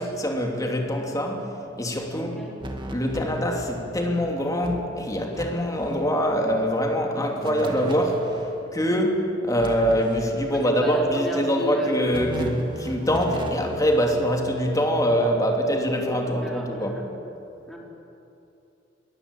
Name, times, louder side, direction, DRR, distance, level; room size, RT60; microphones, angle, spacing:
voice 1, 0.0-2.3 2.9-8.3 8.7-17.0, equal, 20° left, 1 dB, 2.9 m, -24 dB
voice 2, 2.1-2.5 10.5-12.1 16.2-17.0 17.7-17.8, left 1 dB, ahead, -3 dB, 4.1 m, -36 dB
sound 1, 2.6-3.8 4.2-4.3 4.6-5.4 5.7-6.0 7.4-8.5 9.6-10.6 12.1-14.1, right 1 dB, 25° right, 2.2 m, -36 dB
22.5 x 18.5 x 8.3 m, 2.8 s
head